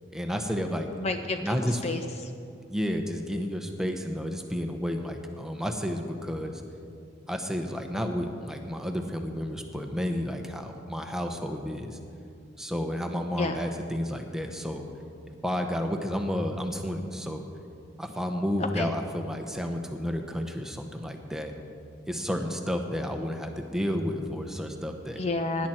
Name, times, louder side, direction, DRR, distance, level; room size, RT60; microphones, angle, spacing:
voice 1, 0.1-0.9 1.4-1.8 2.7-6.6 7.3-12.0 12.6-14.8 15.4-17.4 18.0-21.5 22.1-25.2 25.6-25.7, equal, 5° right, 4 dB, 0.9 m, -31 dB
voice 2, 1.0-2.3 13.4-13.6 18.6-18.9 25.2-25.7, left 3 dB, 35° left, 6 dB, 0.5 m, -30 dB
17.0 x 10.5 x 4.4 m, 2.4 s
head